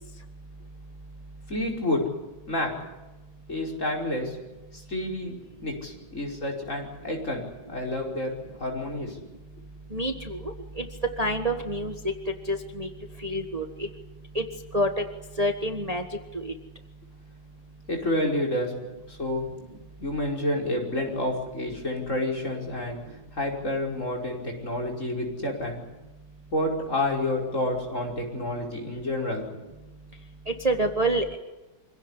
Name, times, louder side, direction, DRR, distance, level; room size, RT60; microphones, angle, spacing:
voice 1, 1.5-2.0 2.5-2.7 3.5-4.4 4.7-9.1 17.9-18.7 19.1-19.5 20.0-23.0 23.3-25.8 26.5-29.5, left 1 dB, 45° left, 0 dB, 5.6 m, -29 dB
voice 2, 9.9-10.4 10.8-10.9 11.2-12.1 12.5-12.9 13.2-13.9 14.3-14.4 14.7-15.0 15.4-16.0 16.3-16.5 30.6-31.4, right 1 dB, 25° right, 5 dB, 1.5 m, -27 dB
25.5 x 17.0 x 10.0 m, 1.1 s
omnidirectional pair, 1.9 m